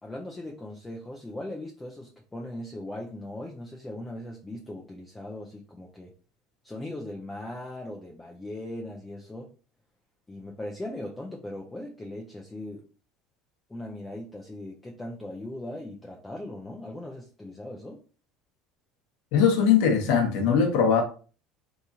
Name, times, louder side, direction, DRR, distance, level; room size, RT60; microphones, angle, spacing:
voice 1, 0.0-6.1 6.6-9.5 10.3-12.8 13.7-18.0, left 1 dB, 10° left, 0.4 m, -39 dB
voice 2, 19.3-21.0, left 7 dB, 60° left, 0.9 m, -21 dB
3.5 x 2.9 x 2.7 m
cardioid pair, 175°, 0 cm